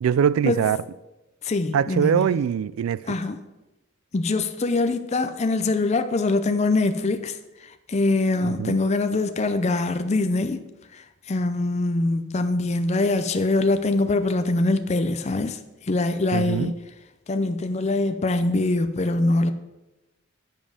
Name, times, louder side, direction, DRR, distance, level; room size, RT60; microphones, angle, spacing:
voice 1, 0.0-0.8 1.7-3.2 8.4-8.8 16.3-16.7, right 8 dB, 80° right, 0.3 m, -23 dB
voice 2, 1.4-2.4 3.1-3.4 4.1-10.6 10.9-15.6 15.9-16.7 17.3-19.5, left 2 dB, 35° left, 0.5 m, -23 dB
9.3 x 5.3 x 5.0 m
head